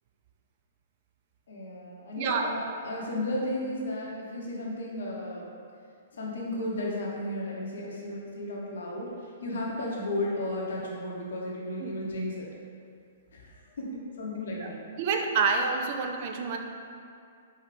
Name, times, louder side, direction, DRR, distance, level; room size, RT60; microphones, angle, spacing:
voice 1, 1.5-5.5 6.1-9.1 9.4-12.5 13.3-13.5 13.8-14.8, left 1 dB, 60° left, -3 dB, 0.8 m, -34 dB
voice 2, 2.2-2.5 11.8-11.9 14.6-14.7 15.0-16.6, right 5 dB, 40° right, 4 dB, 0.3 m, -28 dB
4.7 x 2.7 x 3.3 m, 2.4 s
figure-of-eight pair, 115°, 0 cm